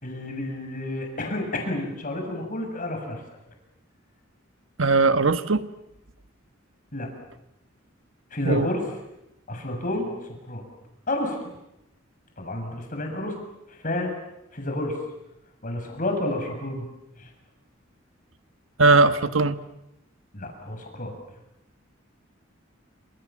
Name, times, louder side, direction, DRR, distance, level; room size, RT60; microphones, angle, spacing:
voice 1, 0.0-3.2 6.9-7.1 8.3-8.8 9.5-10.1 10.5-10.6 11.1-11.4 12.4-13.3 13.8-14.1 14.5-15.0 15.6-16.8 17.2-17.3 20.3-21.1, left 1 dB, 45° left, 3 dB, 7.0 m, -30 dB
voice 2, 4.8-5.6 8.4-8.7 18.8-19.6, right 3 dB, 80° right, 11 dB, 1.4 m, -19 dB
27.5 x 26.5 x 7.4 m, 0.85 s
head